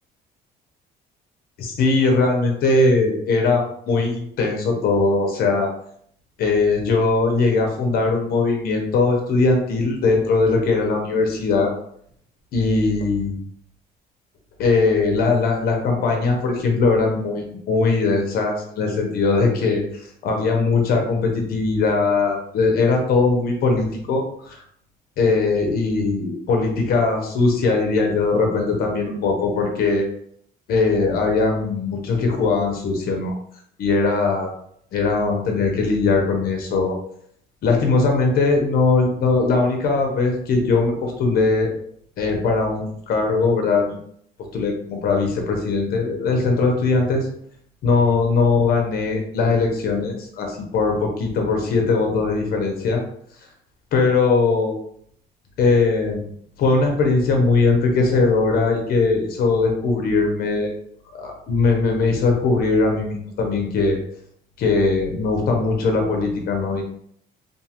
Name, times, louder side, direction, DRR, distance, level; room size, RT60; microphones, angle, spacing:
voice 1, 1.6-5.7 6.4-11.7 12.5-13.3 14.6-19.8 20.2-24.6 25.2-30.1 30.7-33.3 33.8-34.5 34.9-37.0 37.6-41.7 42.2-44.0 44.5-47.3 47.8-53.0 53.9-54.8 55.6-56.2 56.6-60.7 61.2-64.0 64.6-66.9, left 3 dB, 65° left, 2 dB, 0.7 m, -20 dB
2.5 x 2.4 x 2.8 m, 0.67 s
cardioid pair, 110°, 17 cm